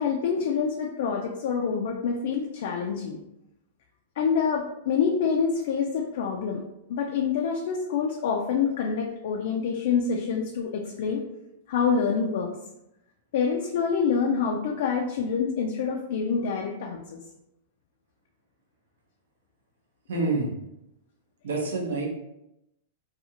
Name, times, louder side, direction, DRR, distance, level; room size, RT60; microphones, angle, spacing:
voice 1, 0.0-3.2 4.2-6.6 6.9-11.2 11.7-12.5 13.3-17.2, left 6 dB, 65° left, 0 dB, 0.3 m, -26 dB
voice 2, 20.1-20.5 21.4-22.1, right 3 dB, 80° right, -1 dB, 0.6 m, -27 dB
2.6 x 2.3 x 2.8 m, 0.86 s
hypercardioid pair, 120°, 0 cm